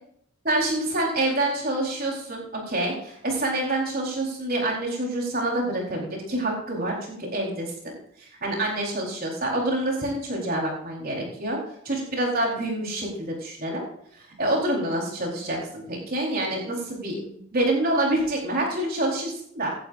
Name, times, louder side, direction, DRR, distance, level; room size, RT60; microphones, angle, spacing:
voice 1, 0.4-11.6 11.8-13.8 14.1-19.7, right 1 dB, 45° right, -1 dB, 4.4 m, -27 dB
18.0 x 11.5 x 2.7 m, 0.65 s
head